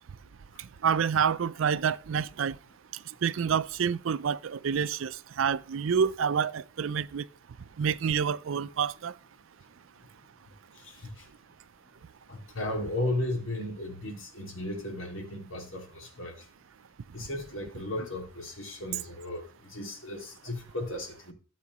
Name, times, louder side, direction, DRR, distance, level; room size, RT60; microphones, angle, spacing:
voice 1, 0.8-2.6 3.2-7.3 7.8-9.1, right 7 dB, 75° right, 0.4 m, -28 dB
voice 2, 12.3-16.3 17.1-21.3, left 1 dB, 75° left, 2.3 m, -35 dB
13.0 x 7.4 x 3.0 m
head